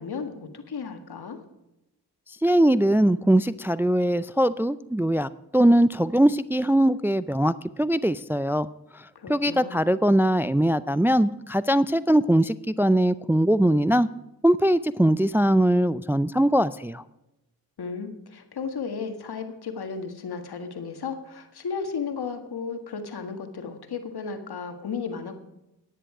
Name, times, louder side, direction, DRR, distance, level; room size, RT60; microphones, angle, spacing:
voice 1, 0.0-1.4 9.1-9.8 17.8-25.4, left 5 dB, 70° left, 7 dB, 1.7 m, -34 dB
voice 2, 2.4-8.7 8.9-14.1 14.4-17.0, right 1 dB, 5° right, 16 dB, 0.4 m, -21 dB
10.0 x 10.0 x 4.8 m, 0.93 s
cardioid pair, 45°, 40 cm